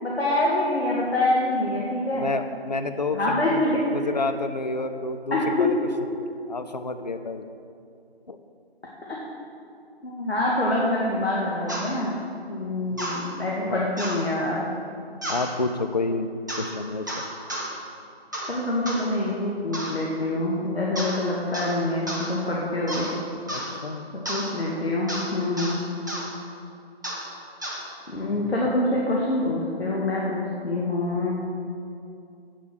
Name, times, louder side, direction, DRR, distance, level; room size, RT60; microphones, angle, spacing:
voice 1, 0.0-2.3 3.1-4.0 5.3-5.7 9.1-9.2 10.0-12.1 12.5-14.7 18.5-23.1 24.1-25.9 28.1-31.3, left 1 dB, 75° left, -4 dB, 2.0 m, -25 dB
voice 2, 2.2-5.8 6.5-7.5 8.3-8.4 12.9-13.0 13.6-13.9 15.3-16.3 16.6-17.2 23.5-24.1 28.3-28.5, left 3 dB, 45° left, 8 dB, 0.5 m, -29 dB
sound 1, 11.7-11.9 13.0-13.2 14.0-14.2 15.2-15.5 16.5-16.7 17.1-17.7 18.3-18.5 18.9-19.0 19.7-20.0 21.0-21.2 21.5-21.8 22.1-22.3 22.9-23.1 23.5-23.7 24.3-24.5 25.1-25.3 25.6-25.8 26.1-26.3 27.0-27.2 27.6-27.8, equal, 20° right, 0.7 m, -31 dB
8.3 x 7.3 x 6.2 m, 2.5 s
figure-of-eight pair, 165°, 32 cm